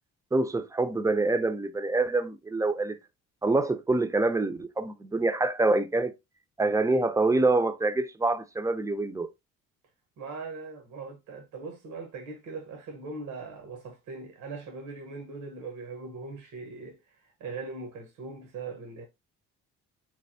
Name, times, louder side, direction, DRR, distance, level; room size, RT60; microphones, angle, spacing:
voice 1, 0.3-3.0 3.4-6.1 6.6-9.3, right 2 dB, 10° right, 0.5 m, -26 dB
voice 2, 10.2-19.1, right 3 dB, 75° right, 1.1 m, -40 dB
3.9 x 3.3 x 2.6 m
cardioid pair, 90°, 30 cm